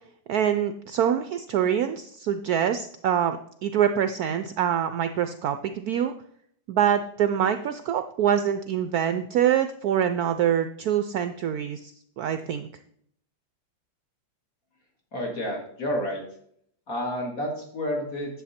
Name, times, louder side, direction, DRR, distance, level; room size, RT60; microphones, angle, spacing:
voice 1, 0.3-6.1 6.7-12.7, right 9 dB, 70° right, 10 dB, 0.9 m, -25 dB
voice 2, 15.1-16.2 16.9-18.4, left 1 dB, 50° left, 0 dB, 2.7 m, -30 dB
10.5 x 7.2 x 4.3 m, 0.68 s
omnidirectional pair, 2.0 m